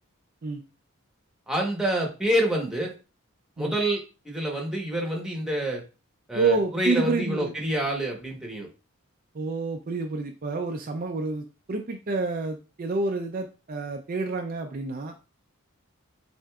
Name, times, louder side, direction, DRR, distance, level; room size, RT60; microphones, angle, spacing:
voice 1, 1.5-2.9 3.6-5.8 6.3-8.7, right 1 dB, 5° right, 0 dB, 1.0 m, -27 dB
voice 2, 6.3-7.5 9.3-15.2, right 3 dB, 40° right, 3 dB, 0.4 m, -28 dB
6.3 x 2.5 x 2.3 m, 0.31 s
head